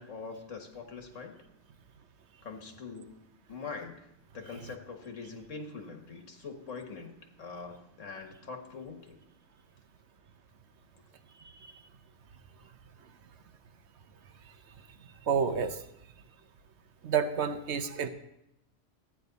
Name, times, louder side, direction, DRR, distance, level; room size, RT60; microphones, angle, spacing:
voice 1, 0.0-1.4 2.4-3.1 3.5-4.0 4.3-7.1 7.4-9.2, left 4 dB, 80° left, 4 dB, 1.8 m, -43 dB
voice 2, 15.3-15.8 17.0-18.1, right 6 dB, 65° right, 9 dB, 1.0 m, -29 dB
15.0 x 9.5 x 4.0 m, 0.84 s
omnidirectional pair, 1.3 m